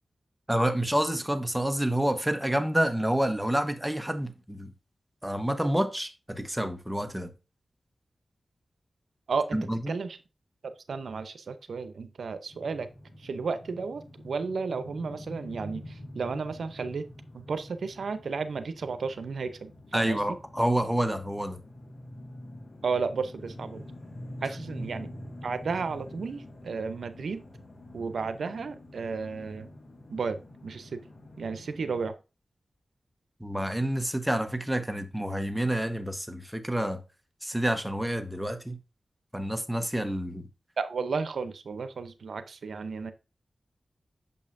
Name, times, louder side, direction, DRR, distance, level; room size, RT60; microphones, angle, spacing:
voice 1, 0.5-4.7 5.2-7.3 9.5-9.9 19.9-21.6 33.4-37.0 37.4-38.8 39.3-40.5, right 1 dB, 5° right, 1.0 m, -28 dB
voice 2, 9.3-9.6 9.9-10.2 10.9-12.9 13.2-17.1 17.3-20.4 22.8-23.9 24.4-25.1 25.4-27.4 27.9-29.7 30.1-31.0 31.4-32.2 40.8-43.1, right 4 dB, 90° right, 0.6 m, -33 dB
sound 1, 12.5-32.1, left 1 dB, 70° left, 2.0 m, -46 dB
7.0 x 5.5 x 2.6 m
cardioid pair, 55°, 0 cm